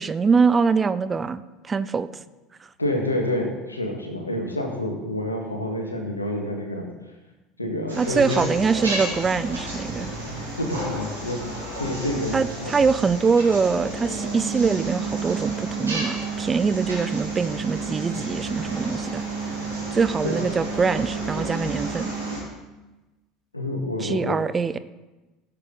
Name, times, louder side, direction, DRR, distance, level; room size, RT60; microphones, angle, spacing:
voice 1, 0.0-2.1 2.6-2.7 8.0-10.1 12.3-19.3 19.9-22.1 24.0-24.8, right 5 dB, 20° right, 14 dB, 0.5 m, -23 dB
voice 2, 2.8-6.9 7.6-8.4 10.6-11.4 11.8-12.7 20.2-20.3 23.5-24.4, left 1 dB, 85° left, 2 dB, 1.7 m, -28 dB
sound 1, 7.9-22.4, right 3 dB, 80° right, 3.8 m, -31 dB
16.5 x 7.7 x 3.9 m, 1.1 s
figure-of-eight pair, 70°, 0 cm